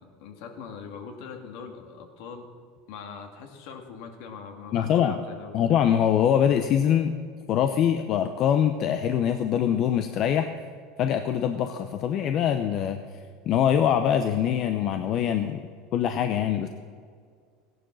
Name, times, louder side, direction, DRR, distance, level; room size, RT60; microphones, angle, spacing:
voice 1, 0.0-2.5 2.9-5.6 16.0-16.2, left 6 dB, 70° left, 4 dB, 2.2 m, -42 dB
voice 2, 4.7-5.2 5.5-7.2 7.5-10.5 11.0-13.0 13.5-15.6 15.9-16.7, left 9 dB, 50° left, 7 dB, 0.8 m, -23 dB
15.5 x 11.0 x 6.4 m, 2.1 s
supercardioid pair, 110°, 0 cm